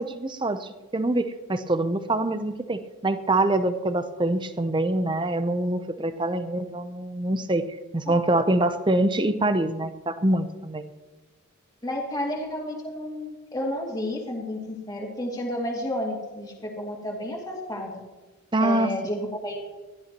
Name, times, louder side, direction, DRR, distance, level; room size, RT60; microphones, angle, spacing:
voice 1, 0.0-7.7 7.9-10.9 18.5-18.9, right 2 dB, 20° right, 10 dB, 0.7 m, -25 dB
voice 2, 11.8-18.0 18.6-19.6, left 1 dB, 15° left, -2 dB, 2.5 m, -31 dB
21.0 x 14.0 x 3.0 m, 1.2 s
head